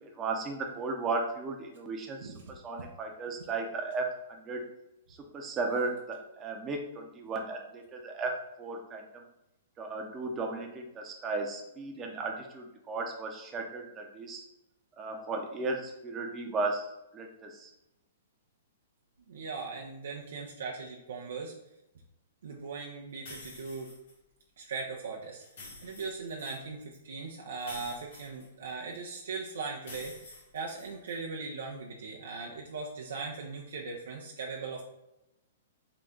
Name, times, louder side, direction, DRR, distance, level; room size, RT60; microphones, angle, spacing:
voice 1, 0.0-4.7 5.3-9.2 9.8-14.4 15.0-16.9 17.1-17.7, right 3 dB, 25° right, 2 dB, 0.7 m, -35 dB
voice 2, 19.3-21.5 22.4-23.9 24.6-25.4 25.8-34.8, right 4 dB, 80° right, -1 dB, 0.6 m, -39 dB
sound 1, 23.3-24.1 25.4-26.6 27.6-29.0 29.8-31.2, left 3 dB, 65° left, 1.3 m, -49 dB
3.9 x 2.2 x 3.6 m, 0.89 s
hypercardioid pair, 130°, 0 cm